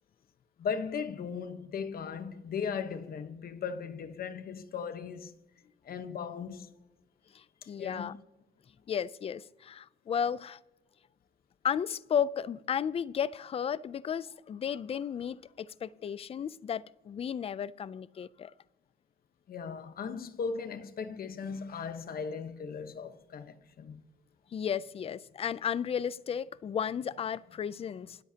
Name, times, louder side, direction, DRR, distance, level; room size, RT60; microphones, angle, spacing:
voice 1, 0.6-5.3 5.8-6.7 7.6-8.1 19.5-24.0, left 6 dB, 50° left, 1.1 m, -37 dB
voice 2, 7.3-8.2 8.9-10.6 11.6-18.5 24.5-28.2, left 8 dB, 30° left, 0.4 m, -34 dB
27.5 x 13.0 x 2.8 m
cardioid pair, 155°, 20 cm